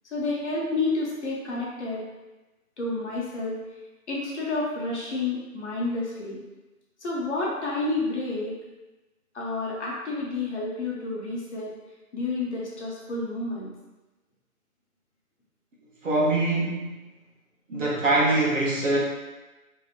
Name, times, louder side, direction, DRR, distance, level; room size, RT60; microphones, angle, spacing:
voice 1, 0.1-2.0 2.8-3.6 4.1-6.4 7.0-8.6 9.3-11.7 12.1-13.7, left 3 dB, 50° left, -4 dB, 0.8 m, -30 dB
voice 2, 16.0-16.9 17.7-19.0, right 2 dB, 60° right, -4 dB, 0.9 m, -23 dB
2.7 x 2.7 x 2.4 m, 1.1 s
figure-of-eight pair, 150°, 44 cm